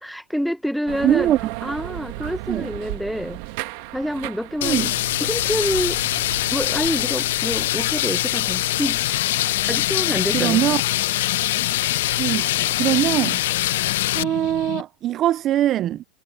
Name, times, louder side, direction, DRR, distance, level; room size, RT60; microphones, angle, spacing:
voice 1, 0.0-1.3 1.6-3.4 3.9-4.9 5.2-6.0 6.5-9.0 9.7-10.6, equal, ahead, 1.0 m, -27 dB
sound 1, 0.9-7.1, right 20 dB, 55° right, 1.5 m, -35 dB
voice 2, 1.0-1.5 2.5-2.7 4.6-4.9 10.3-10.8 12.2-13.4 14.1-16.0, right 12 dB, 30° right, 0.3 m, -22 dB
sound 2, 4.6-14.2, left 15 dB, 75° left, 0.3 m, -23 dB
sound 3, 9.0-14.8, left 18 dB, 55° left, 1.6 m, -34 dB
supercardioid pair, 165°, 0 cm